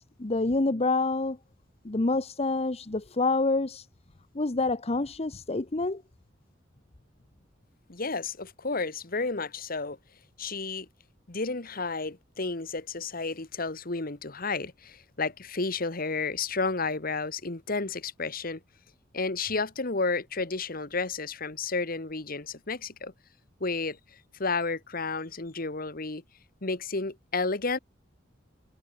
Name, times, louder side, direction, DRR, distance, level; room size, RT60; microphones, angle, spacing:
voice 1, 0.0-1.4 1.8-3.9 4.3-6.0, left 3 dB, 30° left, 0.9 m, -27 dB
voice 2, 7.9-10.0 10.4-10.9 11.3-18.6 19.1-23.1 23.6-24.0 24.4-26.2 26.6-27.8, left 3 dB, 50° left, 1.7 m, -31 dB
head